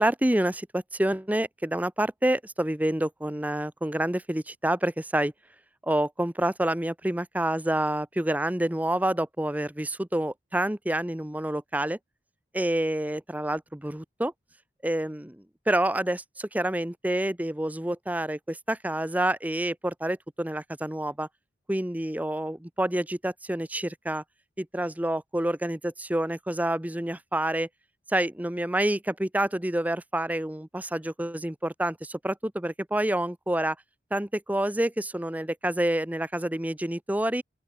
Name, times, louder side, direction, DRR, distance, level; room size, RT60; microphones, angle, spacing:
voice 1, 0.0-5.3 5.8-12.0 12.5-14.3 14.8-15.4 15.7-21.3 21.7-24.2 24.6-27.7 28.1-33.8 34.1-37.4, right 1 dB, 10° right, 0.7 m, -28 dB
open air
head